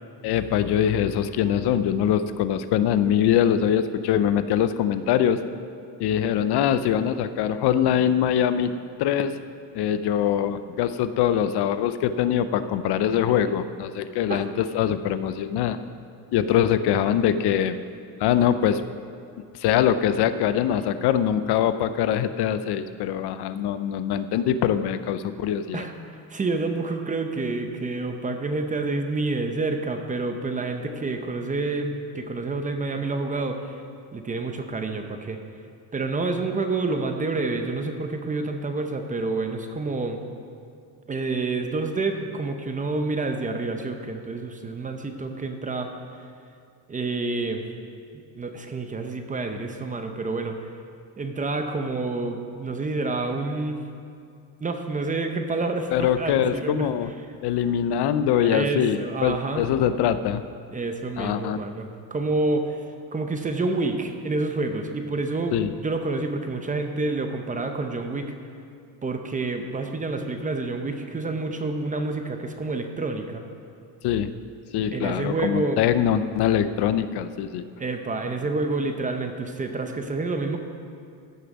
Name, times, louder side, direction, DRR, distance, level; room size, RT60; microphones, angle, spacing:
voice 1, 0.2-5.4 6.0-8.7 9.0-9.3 9.7-15.8 16.3-17.8 18.2-18.8 19.6-25.8 55.9-57.1 57.4-60.4 61.2-61.6 65.5-65.7 74.0-74.3 74.7-77.6, left 9 dB, 75° left, 12 dB, 0.6 m, -23 dB
voice 2, 26.3-33.8 34.1-35.4 35.9-40.2 41.1-45.9 46.9-47.7 48.4-50.7 51.2-53.8 54.6-56.9 58.4-59.7 60.7-62.8 63.1-65.6 65.8-68.3 69.0-73.4 74.9-75.8 77.8-80.6, right 3 dB, 20° right, 5 dB, 0.6 m, -28 dB
15.0 x 6.9 x 5.2 m, 2.5 s
cardioid pair, 175°, 40 cm